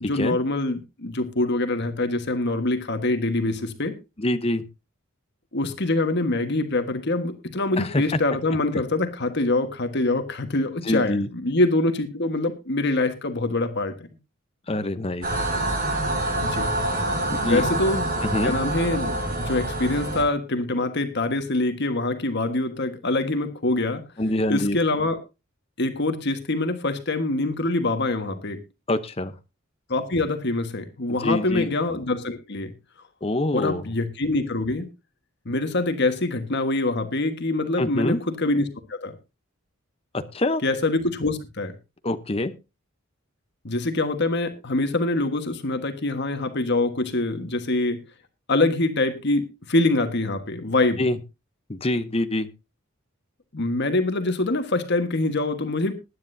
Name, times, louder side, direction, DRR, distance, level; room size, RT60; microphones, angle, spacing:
voice 1, 0.0-3.9 5.5-13.9 16.4-16.7 17.4-18.1 18.4-24.0 24.5-25.2 25.8-28.6 29.9-32.7 33.5-34.9 35.4-39.1 40.6-41.7 43.6-48.0 48.5-51.0 53.5-55.9, left 2 dB, 55° left, 8 dB, 1.5 m, -24 dB
voice 2, 4.2-4.6 7.8-8.0 10.8-11.3 14.7-15.3 17.3-17.7 18.2-18.5 24.2-24.8 28.9-29.3 31.2-31.7 33.2-33.8 37.8-38.2 40.3-40.6 42.0-42.5 51.0-51.2 51.7-52.5, left 1 dB, 30° left, 10 dB, 0.9 m, -25 dB
sound 1, 15.2-20.2, right 1 dB, 45° right, 5.7 m, -26 dB
20.5 x 10.0 x 2.7 m, 0.27 s
head